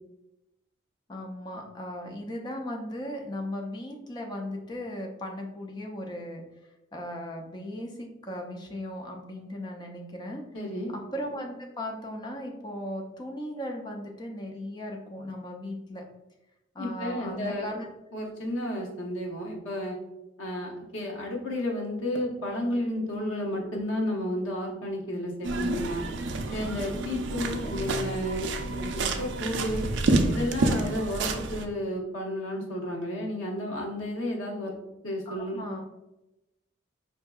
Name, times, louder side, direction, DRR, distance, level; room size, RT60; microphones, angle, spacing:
voice 1, 1.1-10.4 10.9-16.0 16.7-17.9 35.3-35.8, left 1 dB, 20° left, 1 dB, 0.4 m, -37 dB
voice 2, 10.5-10.9 16.8-17.7 18.1-20.0 20.4-26.0 26.5-29.9 30.3-34.7 35.0-35.6, left 1 dB, 90° left, -1 dB, 0.8 m, -32 dB
sound 1, 25.4-31.6, right 2 dB, 65° right, 0.4 m, -29 dB
4.4 x 2.7 x 2.3 m, 0.95 s
head